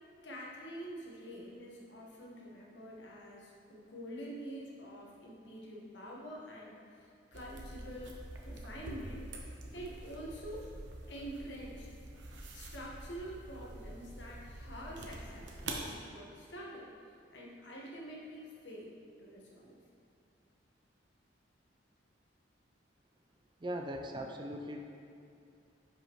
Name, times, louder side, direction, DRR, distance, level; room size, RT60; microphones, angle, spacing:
voice 1, 0.2-8.1 8.4-9.3 9.7-10.7 11.1-11.9 12.5-16.9 17.3-19.8, equal, 70° left, -3 dB, 1.4 m, -47 dB
sound 1, 7.3-15.9, right 2 dB, 70° right, 0.9 m, -46 dB
voice 2, 23.6-24.8, equal, 25° right, 3 dB, 0.5 m, -39 dB
10.0 x 5.4 x 3.0 m, 2.6 s
head